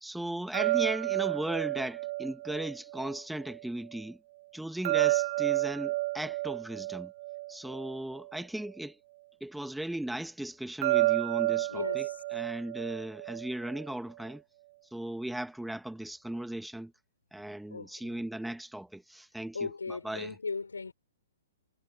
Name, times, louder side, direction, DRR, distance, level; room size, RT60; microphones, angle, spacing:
voice 1, 0.0-4.2 4.5-7.1 7.5-9.0 9.4-14.4 14.9-16.9 17.3-20.3, right 1 dB, ahead, 1.5 m, -37 dB
sound 1, 0.5-3.6 4.8-8.4 10.8-13.9, right 19 dB, 45° right, 0.3 m, -31 dB
voice 2, 11.7-12.2 17.7-18.2 19.5-20.9, left 4 dB, 85° left, 5.9 m, -37 dB
hypercardioid pair, 125°, 0 cm